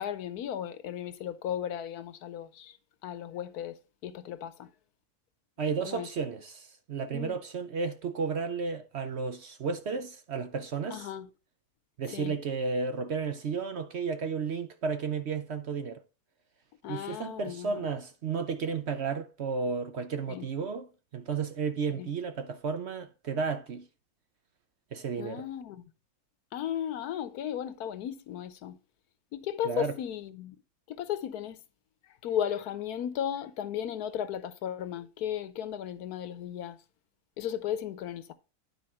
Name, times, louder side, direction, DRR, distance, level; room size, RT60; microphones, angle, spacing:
voice 1, 0.0-4.7 5.8-6.1 7.1-7.4 10.9-11.3 12.1-12.3 16.8-17.9 20.3-20.5 21.9-22.1 25.2-25.8 26.5-28.8 29.3-30.6 30.9-31.6 32.0-36.8 37.4-38.3, left 10 dB, 80° left, 1.3 m, -35 dB
voice 2, 5.6-11.1 12.0-16.0 16.9-20.9 21.1-23.9 24.9-25.4 29.6-29.9, right 5 dB, 55° right, 0.9 m, -33 dB
9.7 x 4.8 x 4.4 m
omnidirectional pair, 1.6 m